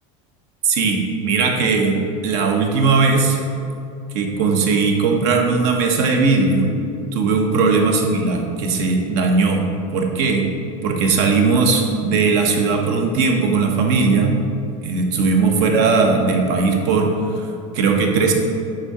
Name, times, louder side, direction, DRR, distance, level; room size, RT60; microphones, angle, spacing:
voice 1, 0.6-3.4 4.1-6.7 7.1-10.5 10.8-14.4 14.8-18.3, right 4 dB, 50° right, 2 dB, 1.2 m, -18 dB
9.4 x 3.8 x 6.8 m, 2.5 s
cardioid pair, 180°, 16 cm